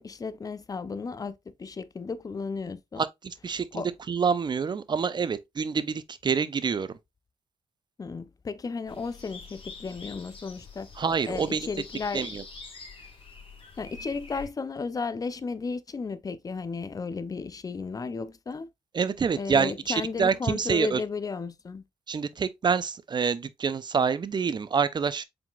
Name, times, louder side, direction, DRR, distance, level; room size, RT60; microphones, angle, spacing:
voice 1, 0.0-3.0 3.7-3.9 8.0-10.9 11.3-12.3 13.8-18.7 19.4-21.8, left 4 dB, 30° left, 0.5 m, -34 dB
voice 2, 3.0-6.9 11.0-11.7 12.1-12.4 18.9-21.0 22.1-25.2, right 6 dB, 40° right, 0.5 m, -27 dB
sound 1, 8.9-14.5, left 4 dB, 50° left, 1.6 m, -45 dB
4.8 x 3.7 x 2.3 m
cardioid pair, 65°, 12 cm